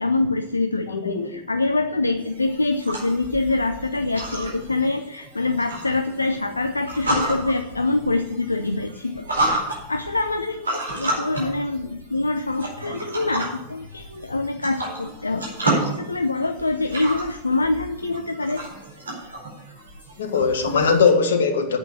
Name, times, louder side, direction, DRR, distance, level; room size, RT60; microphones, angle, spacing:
voice 1, 0.0-9.6 9.9-18.6, left 2 dB, 80° left, 8 dB, 0.6 m, -25 dB
voice 2, 0.9-1.3 20.2-21.8, left 5 dB, 65° left, 6 dB, 1.7 m, -20 dB
sound 1, 2.2-21.1, right 1 dB, 75° right, 4.5 m, -31 dB
8.8 x 8.2 x 7.3 m, 0.92 s
figure-of-eight pair, 90°, 0 cm